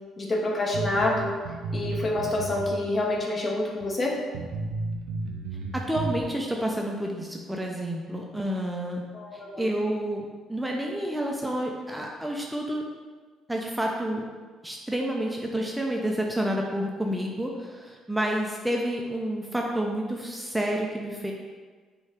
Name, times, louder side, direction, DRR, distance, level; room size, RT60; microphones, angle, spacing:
voice 1, 0.2-1.3 1.7-4.2 9.1-9.7, left 2 dB, 35° left, -2 dB, 1.0 m, -27 dB
sound 1, 0.7-2.8 3.1-3.2 3.8-3.9 4.3-6.2, right 2 dB, 75° right, 0.4 m, -32 dB
voice 2, 5.7-9.0 9.3-12.8 13.5-14.2 14.6-21.3, right 1 dB, 10° right, 0 dB, 0.5 m, -29 dB
5.2 x 2.4 x 3.4 m, 1.5 s
hypercardioid pair, 55°, 0 cm